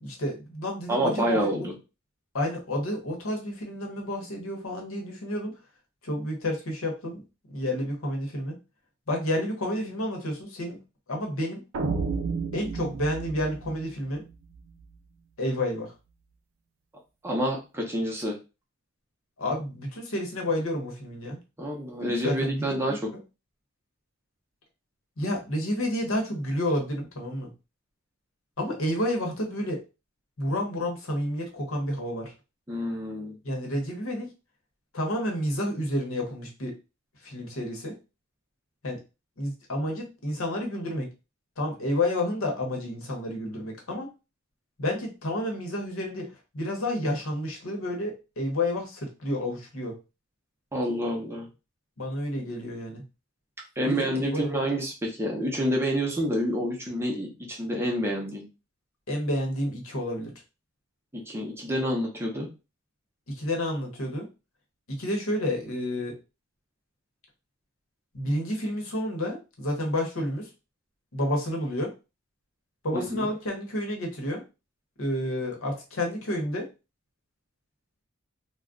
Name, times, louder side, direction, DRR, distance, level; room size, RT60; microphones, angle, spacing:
voice 1, 0.0-1.7 2.3-5.5 6.0-7.2 7.5-8.6 9.1-10.8 11.1-11.6 12.5-14.2 15.4-15.9 19.4-21.4 22.2-23.0 25.2-27.5 28.6-29.8 30.4-32.3 33.4-34.3 34.9-36.7 37.2-37.9 38.8-39.0 39.4-41.1 41.6-44.1 44.8-46.3 46.5-49.9 52.0-53.0 53.8-54.5 59.1-60.3 63.3-64.3 65.0-66.1 68.1-70.5 71.1-71.9 72.8-74.4 75.0-76.7, left 1 dB, 75° left, 1 dB, 1.0 m, -30 dB
voice 2, 0.9-1.7 17.2-18.4 21.6-23.1 32.7-33.3 50.7-51.5 53.8-58.4 61.1-62.5 72.9-73.3, equal, 10° right, -1 dB, 0.6 m, -28 dB
sound 1, 11.7-14.8, right 4 dB, 70° right, 0.4 m, -32 dB
2.4 x 2.2 x 3.6 m, 0.29 s
head